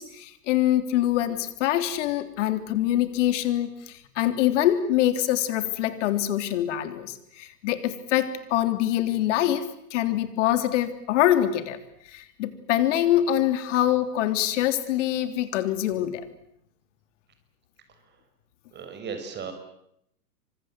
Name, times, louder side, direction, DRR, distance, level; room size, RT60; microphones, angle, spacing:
voice 1, 0.0-11.8 12.1-16.3, left 12 dB, 50° left, 11 dB, 3.3 m, -24 dB
voice 2, 18.7-19.5, right 6 dB, 20° right, 7 dB, 6.5 m, -35 dB
28.0 x 25.0 x 7.8 m, 0.75 s
hypercardioid pair, 115°, 47 cm